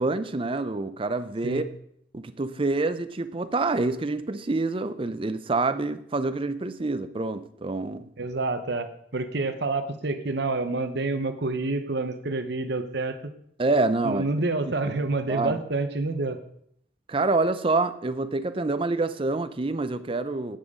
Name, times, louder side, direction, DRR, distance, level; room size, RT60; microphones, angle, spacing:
voice 1, 0.0-1.6 2.1-8.1 13.6-14.2 15.3-15.6 17.1-20.6, right 3 dB, 25° right, 12 dB, 0.5 m, -27 dB
voice 2, 8.2-8.9 9.1-13.2 14.0-16.4, right 3 dB, 55° right, 9 dB, 0.9 m, -28 dB
10.5 x 9.2 x 3.7 m, 0.69 s
head